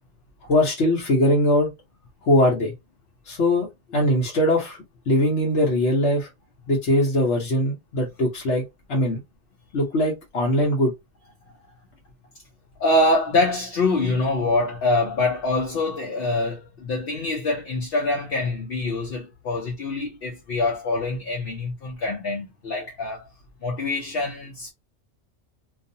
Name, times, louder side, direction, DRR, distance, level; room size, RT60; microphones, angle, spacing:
voice 1, 0.4-1.7 2.2-2.7 3.3-3.7 3.9-4.8 5.1-6.3 6.7-8.6 8.9-9.2 9.7-10.9, left 1 dB, 80° left, 1.1 m, -21 dB
voice 2, 12.8-23.3 23.6-24.7, left 2 dB, 65° left, 0.9 m, -25 dB
2.5 x 2.4 x 2.6 m
omnidirectional pair, 1.1 m